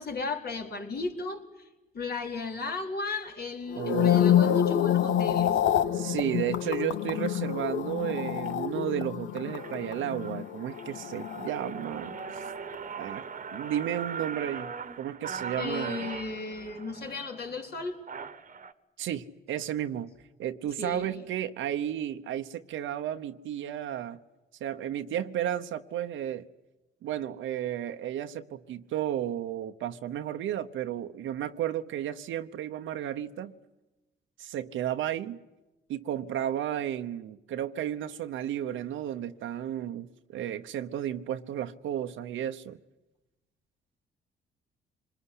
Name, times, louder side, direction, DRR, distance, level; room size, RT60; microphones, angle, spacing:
voice 1, 0.0-1.7 1.9-5.5 15.6-18.0 20.8-21.2, left 4 dB, 50° left, 4.3 m, -35 dB
sound 1, 3.7-12.1 12.4-12.8, left 10 dB, 75° left, 1.1 m, -27 dB
voice 2, 3.8-4.3 5.9-12.4 13.0-13.2 13.5-14.7 15.0-16.1 19.0-20.1 20.4-24.2 24.6-26.4 27.0-33.5 34.4-35.4 35.9-42.8, right 11 dB, 80° right, 1.0 m, -33 dB
sound 2, 6.5-6.7 7.3-7.6 8.1-8.5 8.9-9.0 9.3-18.7, right 6 dB, 40° right, 1.3 m, -41 dB
26.0 x 21.0 x 9.9 m
cardioid pair, 90°, 20 cm